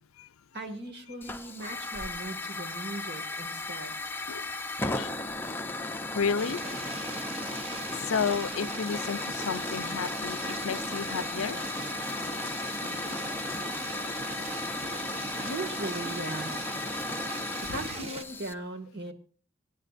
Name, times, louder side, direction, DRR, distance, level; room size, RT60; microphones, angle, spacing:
voice 1, 0.5-4.0 15.4-16.5 17.6-19.1, right 2 dB, 50° right, 2.1 m, -38 dB
Hiss / Fire, 1.2-18.5, left 2 dB, 10° left, 0.6 m, -35 dB
voice 2, 4.8-5.1 6.1-6.6 8.0-11.6, left 6 dB, 75° left, 0.5 m, -32 dB
sound 1, 6.4-18.2, right 2 dB, 30° right, 1.0 m, -40 dB
sound 2, 7.8-10.5 11.6-11.7 14.5-15.2 15.4-16.3, left 1 dB, 5° right, 4.7 m, -56 dB
26.0 x 9.8 x 2.6 m
head